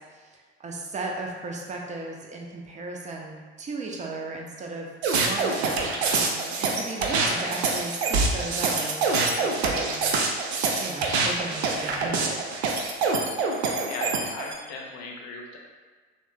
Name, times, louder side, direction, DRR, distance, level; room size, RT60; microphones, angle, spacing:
voice 1, 0.1-4.9 5.2-12.4, right 3 dB, 20° right, 0 dB, 0.5 m, -36 dB
sound 1, 5.0-14.5, right 4 dB, 75° right, 0.5 m, -25 dB
voice 2, 13.9-15.6, left 3 dB, 55° left, 0 dB, 0.7 m, -37 dB
3.1 x 2.1 x 3.3 m, 1.5 s
figure-of-eight pair, 55°, 33 cm